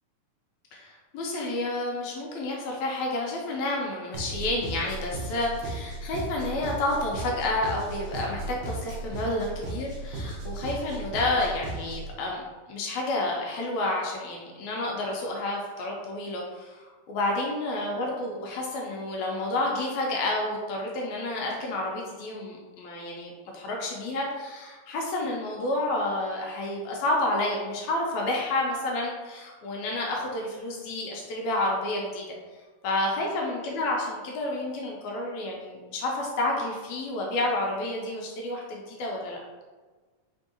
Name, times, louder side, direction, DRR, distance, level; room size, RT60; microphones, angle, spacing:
voice 1, 0.7-12.4 12.7-32.2 32.8-39.4, left 2 dB, 80° left, -2 dB, 1.6 m, -30 dB
sound 1, 4.1-12.1, right 2 dB, 75° right, 1.2 m, -36 dB
4.5 x 3.5 x 2.8 m, 1.4 s
omnidirectional pair, 3.8 m